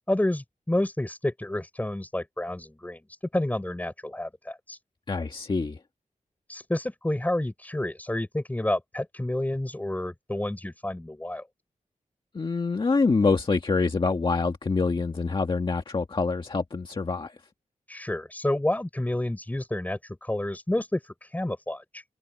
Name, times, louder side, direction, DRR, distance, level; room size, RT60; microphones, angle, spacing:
voice 1, 0.1-4.8 6.5-11.4 17.9-22.0, left 1 dB, 10° left, 6.7 m, -29 dB
voice 2, 5.1-5.8 12.3-17.3, left 4 dB, 40° left, 1.7 m, -25 dB
wide cardioid pair, 150°, 13 cm